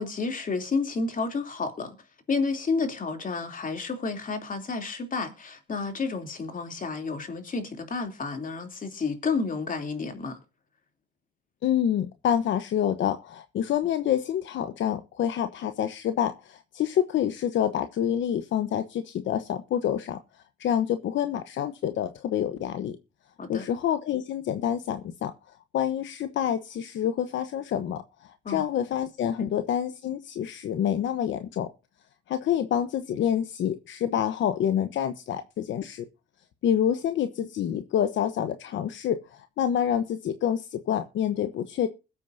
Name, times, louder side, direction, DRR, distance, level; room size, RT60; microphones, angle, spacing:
voice 1, 0.0-1.9 2.3-10.4 23.4-23.6 28.4-28.6 29.4-29.5, left 4 dB, 45° left, 3.2 m, -30 dB
voice 2, 11.6-20.2 20.6-23.0 23.5-25.3 25.7-31.7 32.3-36.1 36.6-41.9, left 9 dB, 70° left, 1.1 m, -27 dB
21.5 x 8.4 x 2.7 m
cardioid pair, 90°, 20 cm